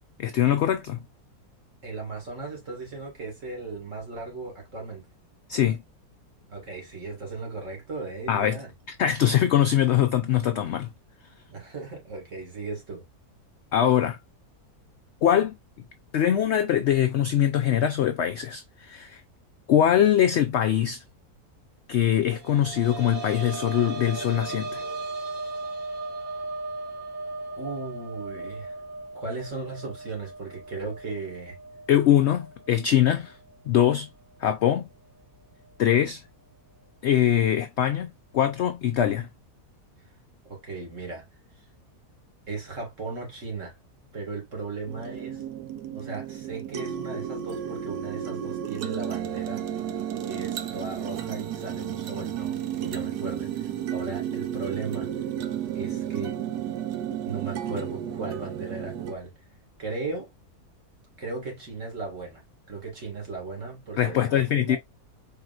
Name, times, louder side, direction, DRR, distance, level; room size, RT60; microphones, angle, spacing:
voice 1, 0.2-1.0 5.5-5.8 8.3-8.6 8.9-10.9 13.7-14.2 15.2-15.6 16.1-19.2 19.7-21.0 21.9-24.8 31.9-33.4 33.7-34.1 34.4-34.9 35.8-36.2 37.0-39.3 64.0-64.8, left 10 dB, 75° left, 0.6 m, -22 dB
voice 2, 1.8-5.1 6.5-8.7 11.5-13.0 27.6-28.7 29.1-31.6 40.4-41.2 42.5-43.8 44.1-45.4 45.9-49.6 50.3-55.1 55.7-56.3 57.2-59.3 59.8-60.3 61.2-62.4 62.7-64.8, right 3 dB, 55° right, 2.3 m, -36 dB
sound 1, 22.2-33.7 34.0-34.1 35.7-35.8, right 2 dB, 25° right, 1.4 m, -37 dB
sound 2, 44.9-59.1, right 10 dB, 85° right, 1.3 m, -33 dB
4.6 x 3.6 x 2.4 m
omnidirectional pair, 1.7 m